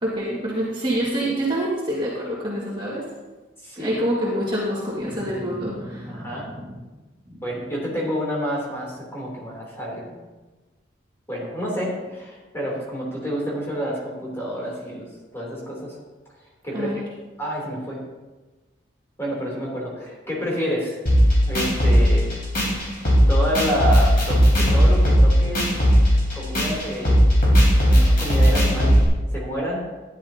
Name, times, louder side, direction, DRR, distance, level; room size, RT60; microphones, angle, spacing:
voice 1, 0.0-3.1 3.8-6.8 16.7-17.0, right 1 dB, 25° right, -6 dB, 1.9 m, -26 dB
voice 2, 3.6-4.0 6.1-6.5 7.3-10.0 11.3-15.1 15.3-16.0 16.6-16.9 17.4-18.0 19.2-21.0 21.5-22.3 23.3-25.6 26.3-27.2 27.8-29.0 29.3-29.8, equal, 15° left, -4 dB, 3.1 m, -28 dB
sound 1, 21.1-29.0, equal, 45° left, 3.9 m, -17 dB
13.0 x 10.5 x 2.8 m, 1.2 s
head